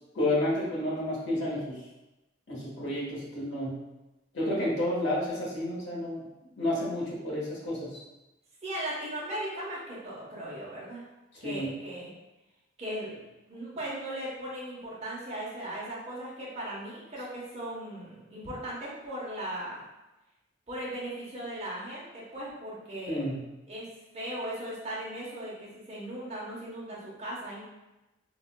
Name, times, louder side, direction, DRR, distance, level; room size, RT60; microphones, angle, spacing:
voice 1, 0.1-1.8 2.5-3.8 4.3-6.2 6.6-8.0 11.4-11.7 23.1-23.4, left 1 dB, 65° left, -7 dB, 1.2 m, -30 dB
voice 2, 8.6-11.0 11.4-12.1 12.8-13.2 13.5-19.8 20.7-23.3 23.7-23.9 24.1-27.6, right 1 dB, 35° right, -7 dB, 0.9 m, -38 dB
3.9 x 2.4 x 2.2 m, 1.0 s
head